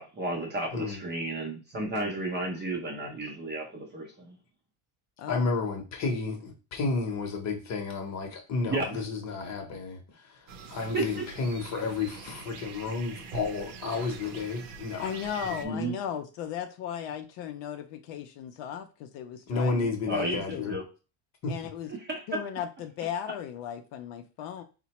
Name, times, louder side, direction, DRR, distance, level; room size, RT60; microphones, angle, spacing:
voice 1, 0.0-4.4 8.7-9.0 10.9-11.3 15.6-15.9 20.1-20.8 21.9-22.4, right 2 dB, 20° right, 1 dB, 0.6 m, -33 dB
voice 2, 5.3-10.0 10.2-10.4 10.7-15.1 15.4-15.6 19.5-20.8 21.4-21.5, left 4 dB, 35° left, 2 dB, 0.8 m, -31 dB
sound 1, 10.5-15.7, right 5 dB, 65° right, 0.7 m, -44 dB
voice 3, 15.0-20.7 21.5-21.9 22.3-24.6, left 9 dB, 60° left, 7 dB, 0.5 m, -36 dB
4.0 x 2.2 x 2.8 m, 0.32 s
cardioid pair, 150°, 50 cm